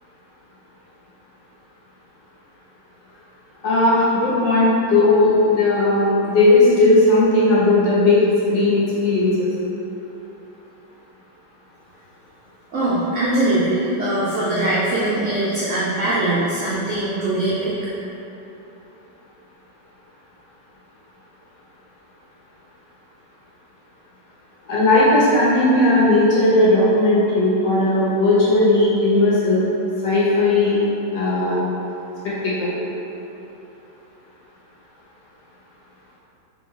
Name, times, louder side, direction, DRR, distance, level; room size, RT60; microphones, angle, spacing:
voice 1, 3.6-9.5 24.7-29.6 30.0-30.8 31.1-31.6 32.2-32.8, left 2 dB, 70° left, -8 dB, 1.7 m, -16 dB
voice 2, 12.7-18.0, right 1 dB, 75° right, -8 dB, 0.7 m, -21 dB
3.7 x 3.3 x 3.7 m, 2.9 s
omnidirectional pair, 2.1 m